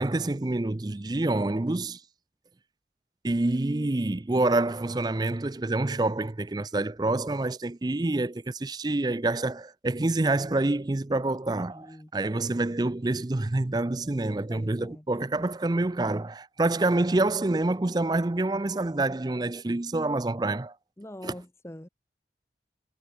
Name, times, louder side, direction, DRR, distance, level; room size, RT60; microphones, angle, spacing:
voice 1, 0.0-2.0 3.2-20.7 21.2-21.4, right 2 dB, 25° right, 0.5 m, -27 dB
voice 2, 11.7-12.1 14.5-15.2 16.7-16.8 21.0-21.9, left 1 dB, 15° left, 0.9 m, -44 dB
head